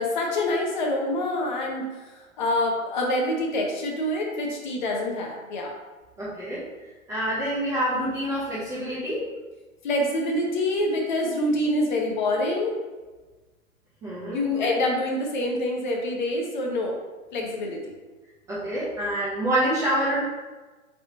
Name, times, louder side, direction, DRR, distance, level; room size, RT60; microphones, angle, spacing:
voice 1, 0.0-1.9 2.4-5.7 9.8-12.7 14.3-17.0 17.3-17.9, left 1 dB, 35° left, 0 dB, 0.7 m, -26 dB
voice 2, 6.2-6.6 7.1-9.2 14.0-14.7 18.5-20.2, right 1 dB, 10° right, -11 dB, 0.5 m, -27 dB
3.9 x 3.5 x 2.5 m, 1.2 s
figure-of-eight pair, 120°, 41 cm